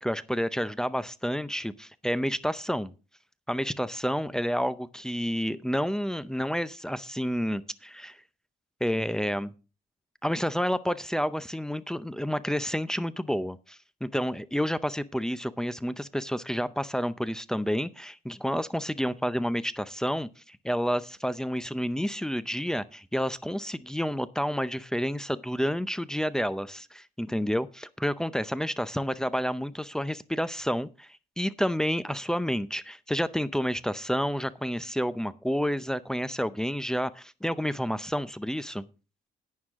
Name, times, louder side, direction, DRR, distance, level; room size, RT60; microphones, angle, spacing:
voice 1, 0.0-2.9 3.5-8.2 8.8-9.5 10.2-38.9, equal, 5° left, 15 dB, 0.6 m, -30 dB
11.0 x 9.4 x 3.6 m, 0.32 s
cardioid pair, 110°, 17 cm